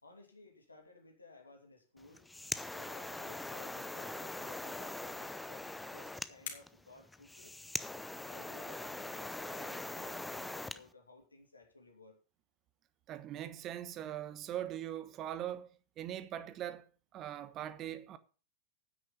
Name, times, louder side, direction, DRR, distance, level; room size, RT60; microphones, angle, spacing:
voice 1, 0.0-2.3 2.7-7.5 8.2-12.2, left 3 dB, 80° left, 2.9 m, -58 dB
sound 1, 2.0-10.8, left 2 dB, 5° left, 0.7 m, -42 dB
sound 2, 5.4-8.1, left 7 dB, 60° left, 3.1 m, -52 dB
voice 2, 13.1-18.2, right 11 dB, 35° right, 1.1 m, -41 dB
9.6 x 9.3 x 5.7 m
figure-of-eight pair, 90°, 0 cm